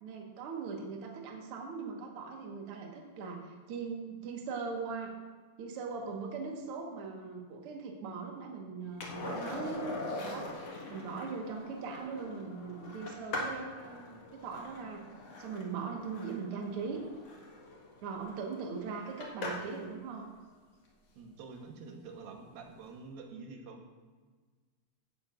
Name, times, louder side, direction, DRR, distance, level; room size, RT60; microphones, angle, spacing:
voice 1, 0.0-5.1 5.6-9.8 10.2-10.5 10.9-15.1 15.4-17.0 18.0-20.3, right 5 dB, 55° right, 1 dB, 1.8 m, -40 dB
Skateboard, 9.0-19.9 22.4-22.5, left 2 dB, 50° left, 2.3 m, -42 dB
voice 2, 21.2-23.8, right 4 dB, 85° right, 3 dB, 3.0 m, -47 dB
16.0 x 11.5 x 2.5 m, 1.4 s
omnidirectional pair, 4.1 m